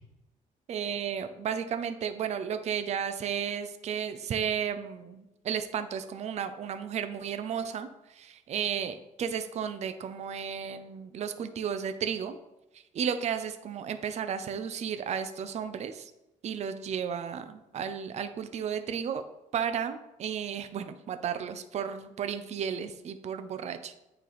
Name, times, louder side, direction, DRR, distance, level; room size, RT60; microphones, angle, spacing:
voice 1, 0.7-12.4 12.9-16.1 16.4-19.3 19.5-24.0, right 8 dB, 55° right, 9 dB, 0.5 m, -33 dB
9.2 x 3.3 x 4.0 m, 0.93 s
cardioid pair, 120°, 14 cm